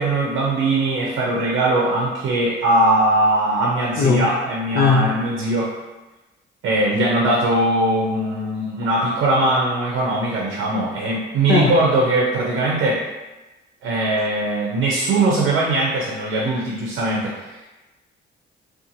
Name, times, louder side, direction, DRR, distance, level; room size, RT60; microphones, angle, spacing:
voice 1, 0.0-5.8 6.6-13.0 13.8-17.6, right 2 dB, 80° right, -3 dB, 0.6 m, -20 dB
voice 2, 4.7-5.1 11.5-11.7, left 5 dB, 55° left, 1 dB, 0.5 m, -17 dB
2.6 x 2.3 x 2.6 m, 1.1 s
cardioid pair, 90°, 20 cm